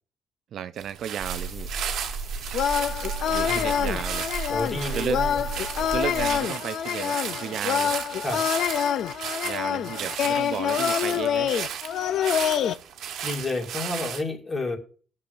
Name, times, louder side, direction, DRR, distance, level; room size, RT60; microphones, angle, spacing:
voice 1, 0.5-1.7 3.3-4.3 4.9-5.2 5.8-7.9 9.4-11.5, right 9 dB, 55° right, 0.4 m, -33 dB
sound 1, 0.8-14.2, right 8 dB, 70° right, 1.2 m, -35 dB
sound 2, 1.2-6.4, right 3 dB, 25° right, 1.8 m, -34 dB
sound 3, 2.5-12.7, left 9 dB, 60° left, 0.4 m, -26 dB
voice 2, 4.5-5.4 8.2-8.4 13.2-14.8, left 2 dB, 20° left, 2.2 m, -30 dB
20.0 x 6.7 x 2.6 m
cardioid pair, 150°, 0 cm